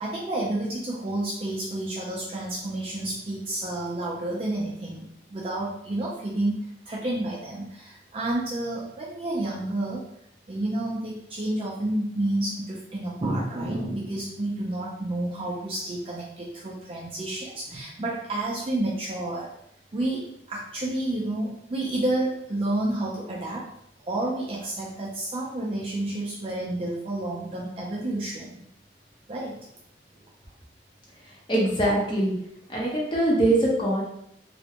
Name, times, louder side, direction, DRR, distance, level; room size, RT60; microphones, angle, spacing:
voice 1, 0.0-6.6 6.9-10.0 10.5-19.5 19.9-23.7 24.1-28.6 29.3-29.6, right 1 dB, 30° right, -4 dB, 0.3 m, -30 dB
voice 2, 31.5-32.3 32.7-34.0, right 1 dB, 25° left, -4 dB, 0.6 m, -22 dB
2.4 x 2.1 x 2.8 m, 0.75 s
head